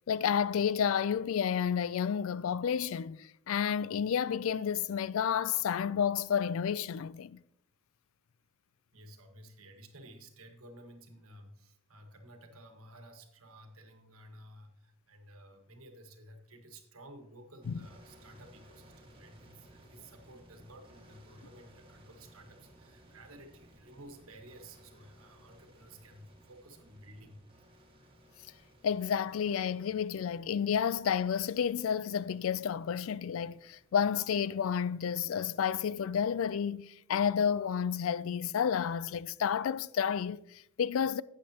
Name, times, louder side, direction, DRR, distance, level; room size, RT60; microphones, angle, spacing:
voice 1, 0.1-7.4 17.7-17.8 28.8-41.2, left 7 dB, 70° left, 0.3 m, -31 dB
voice 2, 8.9-27.4, right 1 dB, 75° right, 1.5 m, -54 dB
sound 1, 17.6-36.2, right 1 dB, 25° right, 1.6 m, -60 dB
12.5 x 8.4 x 2.9 m
head